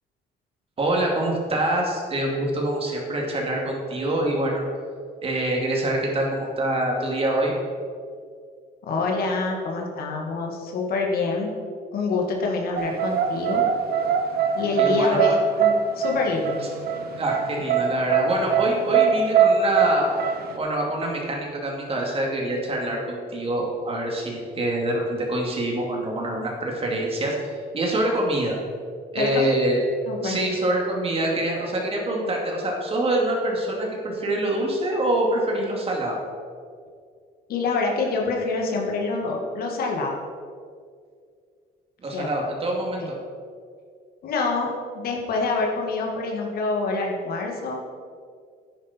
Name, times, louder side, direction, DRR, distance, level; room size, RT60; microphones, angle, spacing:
voice 1, 0.8-4.6 5.2-7.5 14.8-15.4 17.2-20.2 20.6-27.4 27.7-28.5 29.1-29.8 30.2-36.2 42.0-43.1, right 1 dB, 35° right, -1 dB, 2.7 m, -25 dB
voice 2, 8.8-11.6 11.9-13.7 14.6-16.6 29.2-29.5 30.1-30.4 37.5-40.2 42.1-42.3 43.0-43.1 44.2-47.9, left 3 dB, 65° left, 0 dB, 2.0 m, -26 dB
sound 1, 12.8-20.6, right 7 dB, 65° right, 1.1 m, -22 dB
10.0 x 9.8 x 4.5 m, 2.1 s
cardioid pair, 110°, 17 cm